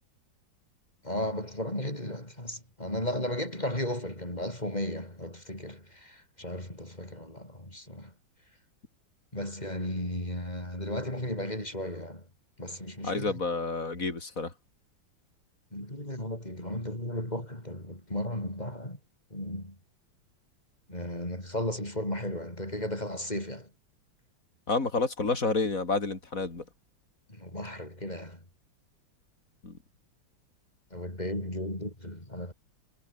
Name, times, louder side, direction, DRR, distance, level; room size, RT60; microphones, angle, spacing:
voice 1, 1.0-8.1 9.3-12.3 12.6-13.4 15.7-19.0 19.3-19.8 20.9-23.7 27.3-28.4 30.9-32.5, left 1 dB, 20° left, 7.4 m, -35 dB
voice 2, 13.0-14.5 24.7-26.6 29.6-29.8, left 3 dB, 45° left, 4.5 m, -29 dB
omnidirectional pair, 2.1 m